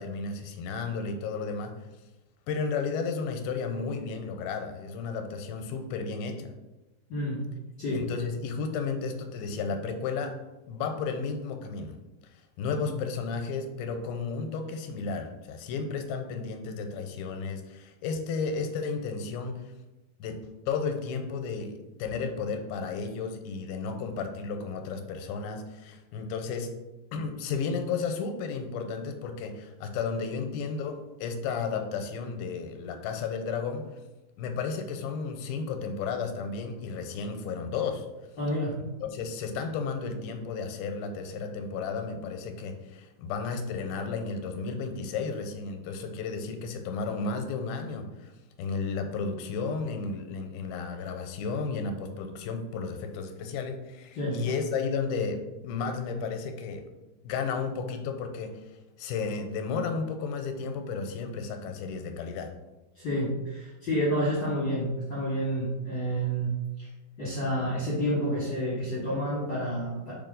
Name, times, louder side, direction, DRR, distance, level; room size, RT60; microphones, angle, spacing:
voice 1, 0.0-1.7 2.5-6.5 7.9-10.3 10.7-12.0 12.6-19.6 20.2-20.4 20.7-26.7 27.1-33.9 34.4-38.1 39.0-48.3 48.6-56.8 57.2-58.5 59.0-62.5, left 5 dB, 85° left, 6 dB, 2.4 m, -33 dB
voice 2, 7.1-7.4 7.8-8.0 38.4-38.8 54.1-54.4 62.9-66.5 66.8-66.9 67.2-70.1, equal, 55° left, -7 dB, 1.3 m, -29 dB
5.1 x 4.8 x 3.8 m, 1.1 s
omnidirectional pair, 4.3 m